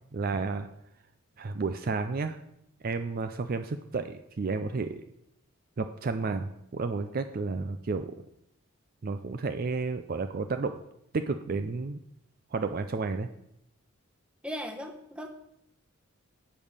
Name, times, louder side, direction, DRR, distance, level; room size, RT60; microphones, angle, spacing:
voice 1, 0.1-0.7 1.4-2.4 2.8-5.0 5.8-8.1 9.0-10.8 11.1-12.0 12.5-13.3, right 4 dB, 45° right, 8 dB, 0.4 m, -31 dB
voice 2, 14.4-15.3, equal, 5° right, 4 dB, 1.0 m, -37 dB
8.9 x 5.4 x 6.5 m, 0.77 s
head